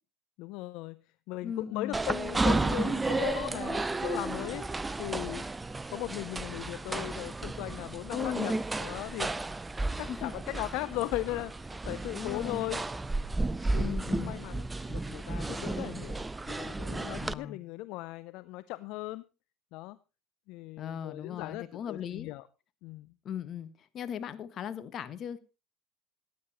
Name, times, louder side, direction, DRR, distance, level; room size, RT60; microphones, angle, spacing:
voice 1, 0.4-1.0 1.3-4.7 5.0-5.5 5.9-9.5 10.0-12.8 13.7-14.0 14.2-19.2 19.7-20.0 20.5-22.5 22.8-23.1, left 19 dB, 65° left, 0.5 m, -38 dB
voice 2, 1.4-2.0 8.1-8.5 9.9-10.3 12.1-12.6 13.7-14.3 17.2-17.6 20.8-22.3 23.2-23.7 23.9-25.4, left 9 dB, 50° left, 1.5 m, -37 dB
sound 1, 1.9-17.3, right 2 dB, 15° right, 0.6 m, -33 dB
15.5 x 9.6 x 4.2 m
hypercardioid pair, 75°, 0 cm